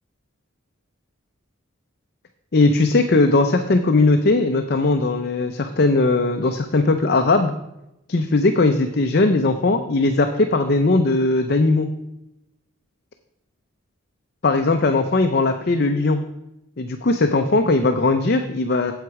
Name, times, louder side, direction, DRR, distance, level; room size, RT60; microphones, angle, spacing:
voice 1, 2.5-7.5 8.1-11.9 14.4-16.2 16.8-18.9, left 3 dB, 50° left, 6 dB, 0.6 m, -19 dB
8.1 x 8.0 x 4.7 m, 0.88 s
head